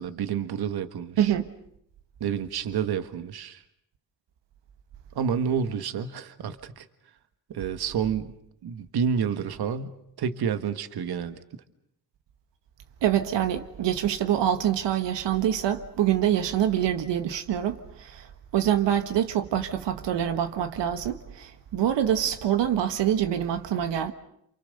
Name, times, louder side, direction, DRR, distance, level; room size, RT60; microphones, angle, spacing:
voice 1, 0.0-1.3 2.2-3.6 5.1-6.9 7.5-8.3 8.6-11.4, right 7 dB, 65° right, 1.7 m, -29 dB
voice 2, 1.2-1.5 13.0-18.3 18.5-24.1, right 10 dB, 85° right, 1.6 m, -25 dB
28.5 x 28.0 x 6.7 m
wide cardioid pair, 155°, 41 cm